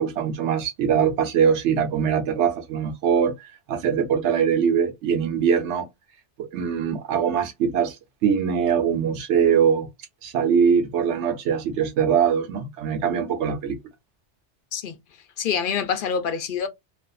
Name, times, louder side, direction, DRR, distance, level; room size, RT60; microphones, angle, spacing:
voice 1, 0.0-5.9 6.4-9.9 10.2-13.8, right 7 dB, 80° right, 0.9 m, -22 dB
voice 2, 15.4-16.7, left 7 dB, 60° left, 0.6 m, -26 dB
2.5 x 2.3 x 2.2 m
omnidirectional pair, 1.2 m